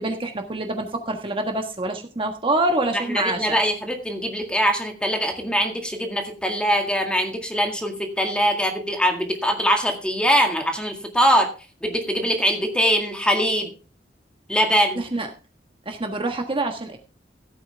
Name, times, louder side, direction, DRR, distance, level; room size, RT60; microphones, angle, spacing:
voice 1, 0.0-3.6 15.0-15.3 15.8-17.0, right 2 dB, 30° right, 4 dB, 1.4 m, -26 dB
voice 2, 3.1-11.5 11.8-13.7 14.5-15.0, equal, 5° left, 4 dB, 1.9 m, -22 dB
15.5 x 8.7 x 3.4 m, 0.35 s
head